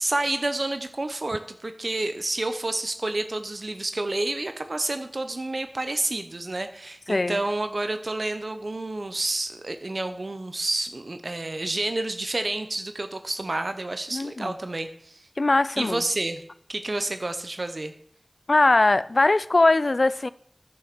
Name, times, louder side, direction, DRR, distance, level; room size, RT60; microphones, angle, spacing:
voice 1, 0.0-15.3 15.8-16.4 16.7-17.9, right 2 dB, 65° right, 0.7 m, -29 dB
voice 2, 14.1-14.5 15.4-16.0 18.5-20.3, left 2 dB, 70° left, 0.3 m, -21 dB
10.5 x 6.3 x 6.0 m
wide cardioid pair, 45°, 0 cm